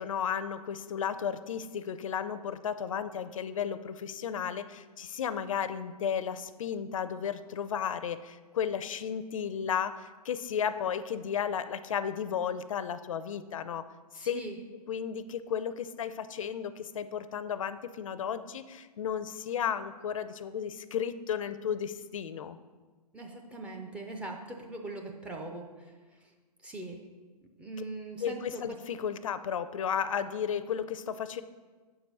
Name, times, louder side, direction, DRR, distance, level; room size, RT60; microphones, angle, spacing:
voice 1, 0.0-13.9 14.1-14.4 14.9-22.6 28.2-31.4, left 8 dB, 55° left, 13 dB, 0.4 m, -34 dB
voice 2, 14.2-14.6 23.1-25.9 26.6-27.0 27.6-28.6, right 2 dB, 5° right, 1 dB, 0.4 m, -41 dB
7.4 x 4.8 x 5.3 m, 1.4 s
figure-of-eight pair, 125°, 21 cm